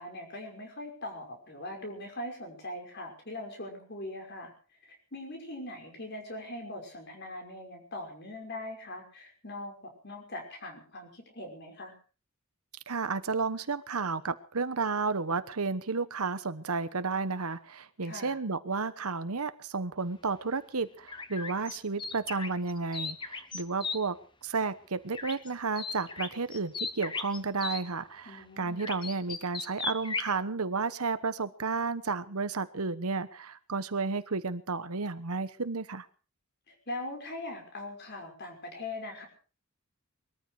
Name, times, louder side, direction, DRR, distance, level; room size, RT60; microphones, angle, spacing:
voice 1, 0.0-4.5 4.9-11.9 18.0-18.4 28.3-28.8 36.7-39.3, left 1 dB, 50° left, 4 dB, 5.7 m, -41 dB
voice 2, 12.9-36.1, right 4 dB, 90° right, 13 dB, 1.1 m, -32 dB
sound 1, 21.1-24.0 25.1-25.5 25.8-27.8 28.8-30.3, left 4 dB, 20° left, 1.2 m, -36 dB
21.5 x 14.0 x 4.8 m, 0.38 s
head